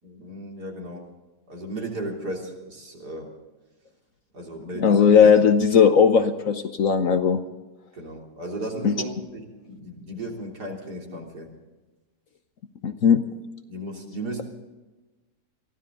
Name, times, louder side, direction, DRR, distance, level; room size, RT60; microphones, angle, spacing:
voice 1, 0.0-1.1 1.5-3.3 4.3-5.0 7.9-11.5 13.7-14.4, right 1 dB, 65° right, 0 dB, 3.8 m, -35 dB
voice 2, 4.8-7.4 8.8-9.0 12.8-13.2, left 6 dB, 55° left, 8 dB, 1.1 m, -17 dB
23.0 x 15.0 x 3.8 m, 1.2 s
omnidirectional pair, 1.9 m